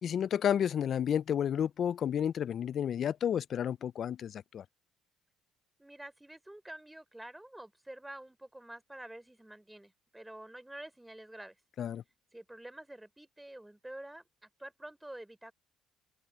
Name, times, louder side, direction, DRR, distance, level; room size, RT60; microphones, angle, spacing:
voice 1, 0.0-4.6 11.8-12.0, left 9 dB, 50° left, 0.3 m, -31 dB
voice 2, 5.8-11.6 12.3-15.5, right 1 dB, 5° right, 3.3 m, -48 dB
open air
cardioid pair, 125°, 0 cm